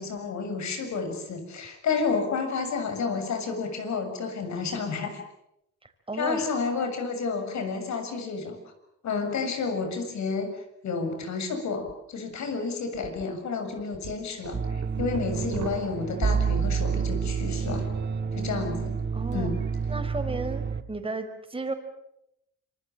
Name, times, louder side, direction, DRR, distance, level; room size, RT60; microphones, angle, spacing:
voice 1, 0.0-5.2 6.2-8.6 9.0-17.9 18.4-18.9 19.3-19.6, left 4 dB, 65° left, 7 dB, 7.2 m, -30 dB
voice 2, 5.8-6.4 19.1-19.5 19.9-20.6 20.9-21.7, right 3 dB, 20° right, 7 dB, 4.9 m, -33 dB
sound 1, 11.8-11.9 12.3-12.4 13.0-13.2 13.7-17.5 17.8-18.3, right 9 dB, 65° right, 2.4 m, -41 dB
sound 2, 14.5-20.8, right 6 dB, 35° right, 1.5 m, -29 dB
27.0 x 24.5 x 7.6 m, 0.83 s
cardioid pair, 90°, 30 cm